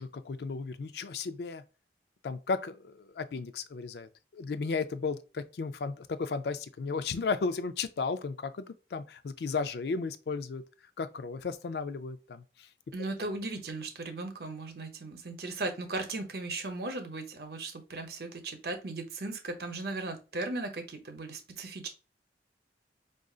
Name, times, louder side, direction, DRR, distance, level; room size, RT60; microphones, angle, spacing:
voice 1, 0.0-1.6 2.2-10.6 11.0-12.7, left 4 dB, 65° left, 0.4 m, -34 dB
voice 2, 12.9-21.9, right 2 dB, 60° right, 0.8 m, -37 dB
4.9 x 2.5 x 2.3 m
head